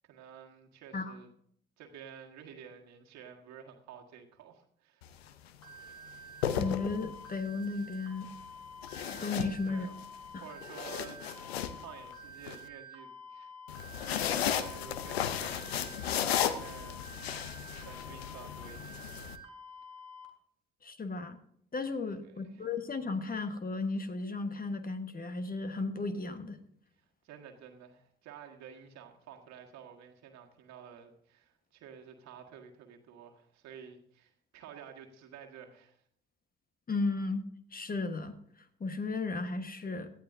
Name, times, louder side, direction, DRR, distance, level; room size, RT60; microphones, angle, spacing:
voice 1, 0.0-1.3 1.8-5.1 9.6-10.0 10.4-11.2 11.7-13.5 14.1-19.3 22.2-22.7 27.2-36.0, right 8 dB, 60° right, 2 dB, 1.7 m, -51 dB
sound 1, 5.0-5.3 6.2-7.4 8.8-10.0 10.5-12.6 13.7-19.4, left 9 dB, 85° left, 0.6 m, -35 dB
sound 2, 5.6-20.3, equal, 55° left, 2.8 m, -49 dB
voice 2, 6.5-8.3 9.1-9.9 10.3-10.4 20.8-21.4 21.7-26.6 36.9-37.4 37.7-38.3 38.8-40.1, left 3 dB, 30° left, 9 dB, 1.3 m, -34 dB
17.5 x 12.0 x 2.6 m, 0.66 s
figure-of-eight pair, 50°, 30 cm